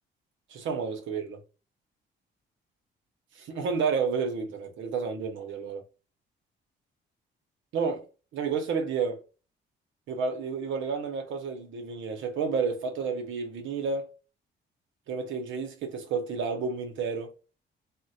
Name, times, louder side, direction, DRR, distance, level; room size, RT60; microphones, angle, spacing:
voice 1, 0.5-1.4 3.3-5.8 7.7-8.1 8.3-9.2 10.1-14.1 15.1-17.3, right 5 dB, 75° right, 0.8 m, -30 dB
3.7 x 2.1 x 2.6 m
cardioid pair, 90°, 20 cm